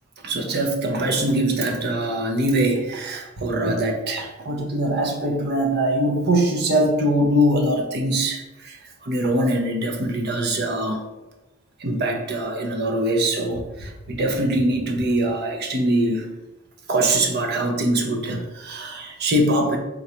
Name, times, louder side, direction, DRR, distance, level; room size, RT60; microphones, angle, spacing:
voice 1, 0.2-8.8 9.0-11.0 11.8-16.3 16.9-19.8, right 1 dB, 55° right, 2 dB, 0.7 m, -22 dB
3.9 x 2.3 x 4.2 m, 1.0 s
head